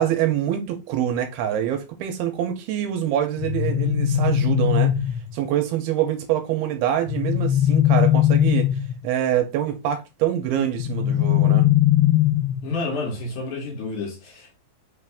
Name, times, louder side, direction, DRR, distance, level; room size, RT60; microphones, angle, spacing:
voice 1, 0.0-4.9 5.3-8.8 9.0-11.7, right 11 dB, 85° right, 2.5 m, -25 dB
sound 1, 3.4-5.4 7.1-9.0 10.8-12.7, left 12 dB, 90° left, 2.6 m, -20 dB
voice 2, 12.6-14.6, left 3 dB, 60° left, 2.7 m, -30 dB
5.8 x 2.6 x 3.4 m
omnidirectional pair, 4.5 m